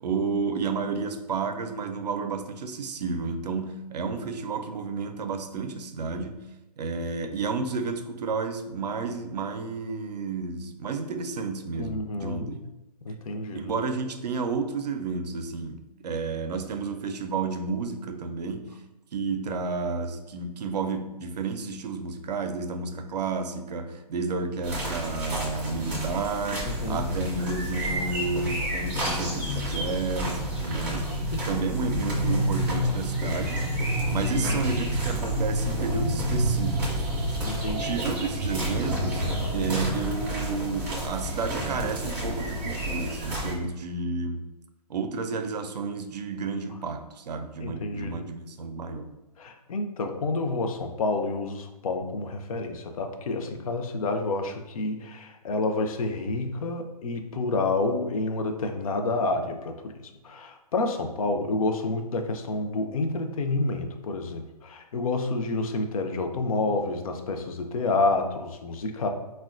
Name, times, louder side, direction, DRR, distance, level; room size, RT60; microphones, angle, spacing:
voice 1, 0.0-6.4 6.8-12.6 13.5-18.8 19.1-31.2 31.5-33.7 34.1-37.1 37.8-44.5 44.9-49.1, right 4 dB, 75° right, 0.4 m, -31 dB
voice 2, 11.8-12.5 13.0-13.7 26.7-27.1 31.0-31.5 34.2-34.6 37.4-38.0 47.6-48.3 49.4-59.9 60.2-69.1, left 3 dB, 60° left, 0.4 m, -29 dB
sound 1, 24.6-43.5, equal, 10° right, 0.3 m, -29 dB
3.6 x 2.2 x 2.4 m
hypercardioid pair, 150°, 21 cm